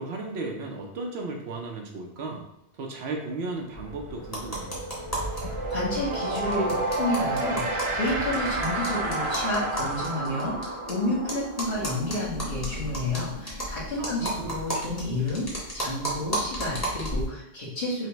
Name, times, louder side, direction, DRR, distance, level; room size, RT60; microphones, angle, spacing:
voice 1, 0.0-2.5 2.7-4.8 14.0-14.6, right 3 dB, 75° right, 1 dB, 0.8 m, -35 dB
sound 1, 3.3-3.5 3.8-14.3, right 2 dB, 45° right, 0.4 m, -32 dB
sound 2, 3.7-10.0, left 1 dB, 40° left, 0.5 m, -41 dB
sound 3, 4.3-5.4 5.7-5.8 6.0-6.1 6.4-10.9 11.3-17.3, right 1 dB, 15° left, 1.1 m, -33 dB
voice 2, 5.3-18.1, left 1 dB, 85° left, -11 dB, 1.6 m, -30 dB
5.5 x 2.1 x 3.0 m, 0.80 s
omnidirectional pair, 1.1 m